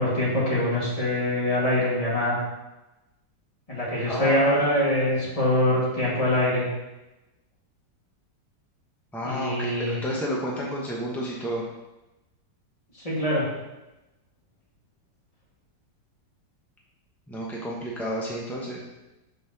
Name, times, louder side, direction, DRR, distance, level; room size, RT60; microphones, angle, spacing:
voice 1, 0.0-2.4 3.7-6.7 9.2-10.0 13.0-13.5, left 1 dB, 20° left, -7 dB, 2.2 m, -24 dB
voice 2, 4.0-4.6 9.1-11.6 17.3-18.8, equal, ahead, -4 dB, 0.4 m, -31 dB
5.4 x 4.3 x 5.9 m, 1.0 s
omnidirectional pair, 2.0 m